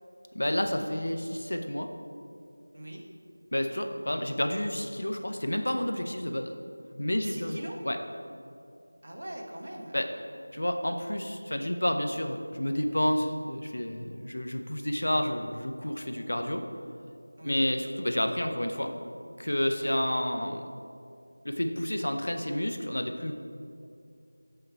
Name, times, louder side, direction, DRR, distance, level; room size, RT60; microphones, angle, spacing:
voice 1, 0.3-1.9 3.5-6.5 7.0-8.0 9.9-10.1 10.5-16.7 17.4-18.9 19.4-20.6 21.4-23.3, left 1 dB, 80° left, 6 dB, 0.6 m, -30 dB
voice 2, 2.7-3.0 7.2-7.8 9.0-10.0 17.4-17.7 19.8-20.0, right 1 dB, 60° right, 1 dB, 0.9 m, -42 dB
7.8 x 3.2 x 4.4 m, 2.5 s
figure-of-eight pair, 175°, 0 cm